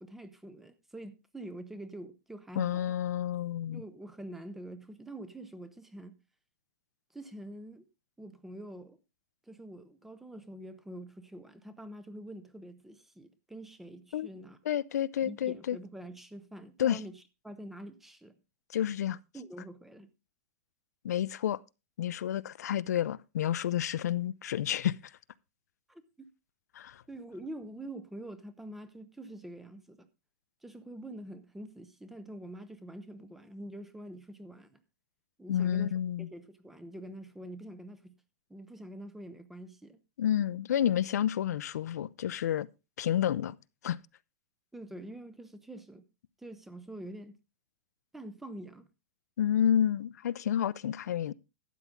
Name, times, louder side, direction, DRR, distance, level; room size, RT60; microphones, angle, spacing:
voice 1, 0.0-2.9 3.7-6.2 7.1-7.8 8.2-9.0 9.5-14.6 15.2-18.3 19.3-20.1 25.9-26.3 27.1-30.1 30.6-34.8 35.4-38.2 38.5-40.0 44.7-46.0 46.4-47.3 48.1-48.9, right 1 dB, 5° right, 0.5 m, -46 dB
voice 2, 2.6-3.8 14.1-14.3 14.7-15.8 16.8-17.0 18.7-19.2 21.0-21.6 22.0-25.0 26.7-27.0 35.5-36.3 40.2-42.7 43.0-43.6 43.8-44.0 49.4-51.3, left 10 dB, 85° left, 0.5 m, -30 dB
12.5 x 8.3 x 3.6 m
supercardioid pair, 170°, 9 cm